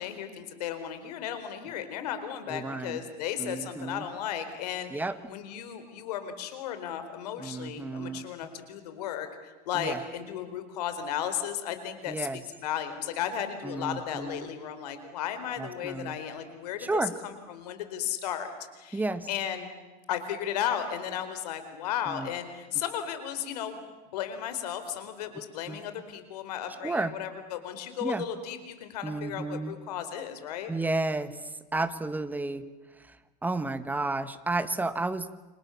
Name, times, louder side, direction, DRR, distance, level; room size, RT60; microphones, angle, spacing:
voice 1, 0.0-9.3 9.7-12.3 12.6-18.5 18.8-19.0 19.3-19.7 20.1-23.8 24.1-30.7, left 9 dB, 90° left, 10 dB, 4.4 m, -35 dB
voice 2, 2.5-3.0 3.4-4.1 4.9-5.2 7.4-8.3 9.7-10.0 12.1-12.4 13.6-14.5 15.6-16.2 16.8-17.1 18.9-19.3 22.1-22.3 25.7-25.8 26.8-27.1 28.0-28.2 29.0-29.7 30.7-31.4 31.7-32.6 33.4-35.3, right 2 dB, 10° right, 11 dB, 1.6 m, -32 dB
30.0 x 26.0 x 7.3 m, 1.2 s
supercardioid pair, 130°, 20 cm